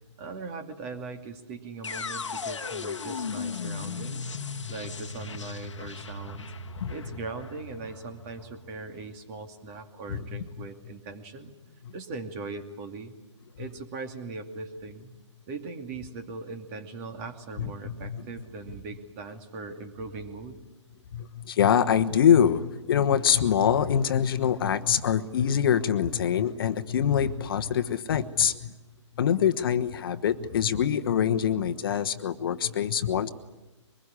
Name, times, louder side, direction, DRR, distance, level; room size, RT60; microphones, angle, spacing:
voice 1, 0.2-4.3 4.7-6.5 6.9-11.5 11.9-13.2 13.6-15.1 15.5-20.6, right 3 dB, 30° right, 7 dB, 2.4 m, -40 dB
sound 1, 1.8-9.8, left 5 dB, 70° left, 1.4 m, -37 dB
voice 2, 17.6-18.2 21.1-28.7 29.2-33.3, left 8 dB, 45° left, 10 dB, 1.3 m, -24 dB
23.5 x 21.0 x 9.9 m, 1.1 s
figure-of-eight pair, 140°, 16 cm